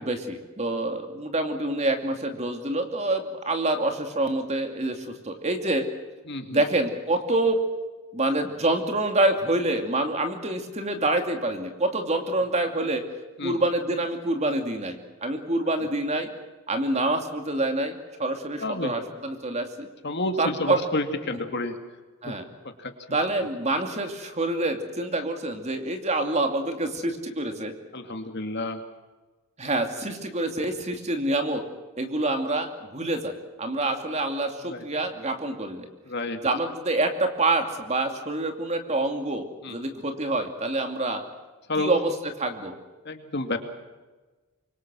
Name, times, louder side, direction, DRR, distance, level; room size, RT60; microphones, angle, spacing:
voice 1, 0.0-5.9 6.5-7.6 8.1-13.0 13.4-16.3 16.7-19.9 20.4-20.8 22.2-22.4 23.1-27.7 29.6-31.6 32.0-35.9 36.4-41.2 41.8-42.1 42.4-42.8, right 2 dB, 30° right, 5 dB, 2.6 m, -26 dB
voice 2, 6.3-6.6 13.4-13.6 18.6-18.9 20.0-21.8 22.2-22.3 22.8-22.9 27.9-28.8 34.6-34.8 36.1-36.4 39.6-39.8 41.7-42.0 43.0-43.6, left 2 dB, 50° left, 6 dB, 2.3 m, -30 dB
26.0 x 23.5 x 6.3 m, 1.2 s
head